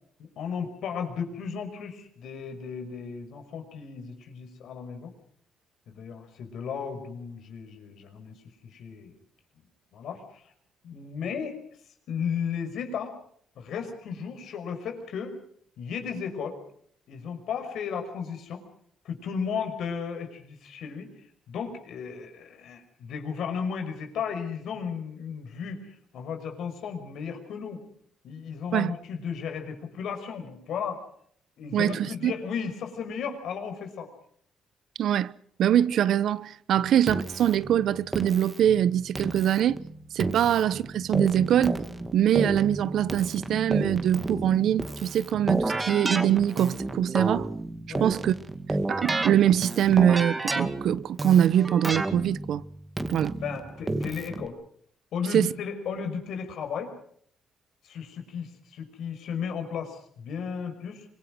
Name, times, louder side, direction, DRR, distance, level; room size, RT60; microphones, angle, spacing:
voice 1, 0.2-5.1 5.9-8.4 8.6-9.1 9.9-10.5 10.8-11.6 12.1-13.1 13.6-15.3 15.8-16.6 17.1-18.6 19.0-27.8 28.2-31.0 31.6-34.1 36.8-36.9 40.4-40.5 47.9-48.2 53.4-54.6 55.1-56.9 57.8-61.1, left 6 dB, 75° left, 5.7 m, -35 dB
voice 2, 31.7-32.3 35.0-35.3 35.6-39.8 40.1-41.8 42.1-47.5 48.0-48.3 48.9-52.6 53.1-53.3 55.3-55.5, right 10 dB, 70° right, 0.9 m, -23 dB
Keyboard (musical), 37.1-54.5, right 2 dB, 20° right, 2.3 m, -31 dB
25.0 x 22.5 x 6.3 m
cardioid pair, 90°, 0 cm